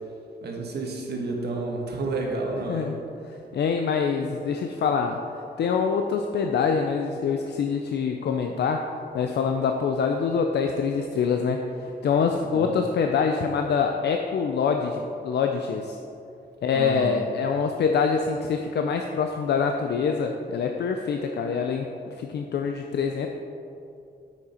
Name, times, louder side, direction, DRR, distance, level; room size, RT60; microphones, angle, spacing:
voice 1, 0.4-2.9 12.5-12.7 16.7-17.1, right 3 dB, 70° right, 0 dB, 1.5 m, -30 dB
voice 2, 2.7-3.0 3.3-5.2 5.6-8.8 9.1-16.0 16.6-21.9 22.2-23.3, left 6 dB, 75° left, 4 dB, 0.5 m, -25 dB
8.9 x 6.3 x 4.3 m, 2.7 s
wide cardioid pair, 165°, 18 cm